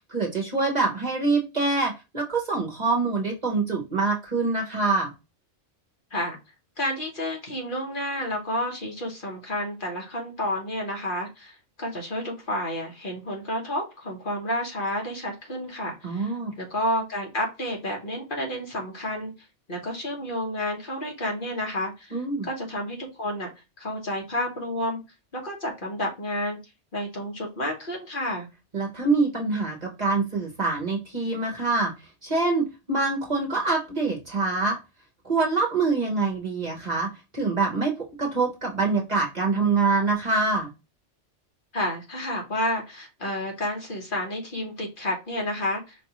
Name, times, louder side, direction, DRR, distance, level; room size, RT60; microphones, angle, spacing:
voice 1, 0.1-5.1 16.0-16.5 22.1-22.5 28.7-31.9 32.2-34.8 35.2-40.7, right 3 dB, 40° right, -1 dB, 1.0 m, -25 dB
voice 2, 6.8-19.3 19.7-23.5 23.8-25.0 25.3-26.6 26.9-28.5 41.7-45.9, left 1 dB, 45° left, -1 dB, 1.4 m, -30 dB
5.2 x 2.5 x 2.9 m, 0.26 s
omnidirectional pair, 1.2 m